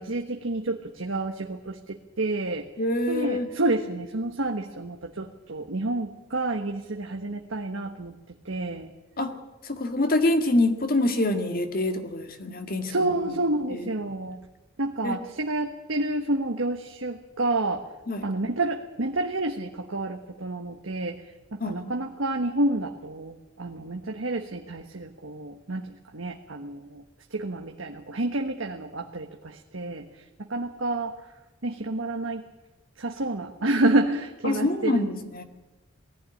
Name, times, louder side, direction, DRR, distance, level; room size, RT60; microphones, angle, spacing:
voice 1, 0.0-2.6 3.1-8.2 8.4-8.9 12.9-14.4 14.8-17.8 18.2-21.2 21.5-27.0 27.3-30.0 30.4-31.1 31.6-32.4 33.0-35.1, right 2 dB, 80° right, 3 dB, 1.4 m, -29 dB
voice 2, 2.8-3.5 9.2-9.3 9.6-13.1 13.7-13.9 15.0-15.2 18.1-18.3 21.6-22.0 34.4-35.4, left 2 dB, 50° left, 7 dB, 2.0 m, -26 dB
19.5 x 14.5 x 9.9 m, 1.1 s
head